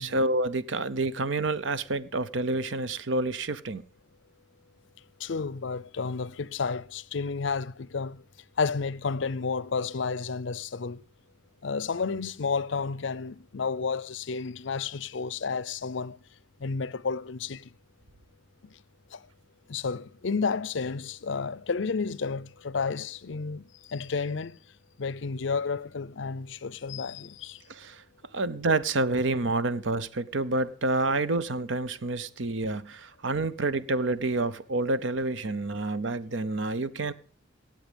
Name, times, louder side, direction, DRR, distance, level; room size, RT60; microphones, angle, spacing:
voice 1, 0.0-3.8 27.7-28.0 28.3-37.1, right 2 dB, 75° right, 0.8 m, -28 dB
voice 2, 5.2-8.2 8.6-11.0 11.6-16.2 16.6-17.7 19.1-19.2 19.7-24.6 25.0-27.6, left 5 dB, 70° left, 0.6 m, -31 dB
17.5 x 7.7 x 5.2 m
head